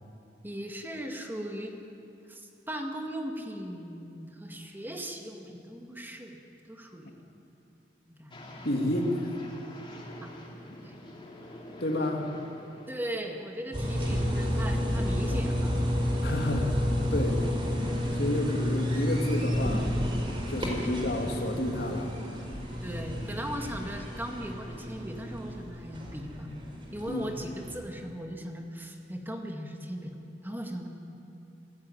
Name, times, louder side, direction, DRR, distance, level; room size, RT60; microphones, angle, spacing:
voice 1, 0.4-1.8 2.3-6.4 6.7-7.2 8.1-8.3 10.2-10.5 10.8-10.9 12.9-15.8 20.6-21.1 22.8-26.5 26.9-30.2 30.4-30.9, equal, 10° right, 2 dB, 2.0 m, -38 dB
sound 1, 8.3-13.3, left 1 dB, 30° left, 3.1 m, -46 dB
voice 2, 8.6-9.3 11.8-12.3 16.2-16.8 17.1-17.6 18.2-19.9 20.5-22.1 27.1-27.2, left 1 dB, 65° left, 2 dB, 2.6 m, -30 dB
sound 2, 13.7-27.7, equal, 30° right, 4.5 m, -31 dB
24.5 x 16.0 x 9.1 m, 2.7 s
head